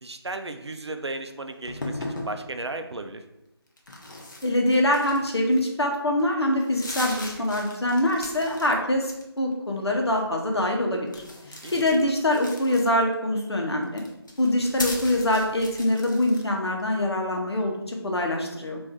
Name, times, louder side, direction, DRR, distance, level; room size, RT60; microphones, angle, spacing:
voice 1, 0.0-3.2 11.6-11.7, right 2 dB, 80° right, 6 dB, 0.4 m, -35 dB
sound 1, 1.7-2.4 3.8-5.7 6.2-6.3 6.6-8.7 9.0-9.5 11.1-13.1 13.8-16.5, left 1 dB, 45° left, 0.6 m, -37 dB
voice 2, 4.4-11.1 11.5-14.0 14.4-18.8, left 1 dB, 70° left, 1 dB, 0.8 m, -24 dB
3.4 x 2.5 x 3.6 m, 0.90 s
figure-of-eight pair, 165°, 14 cm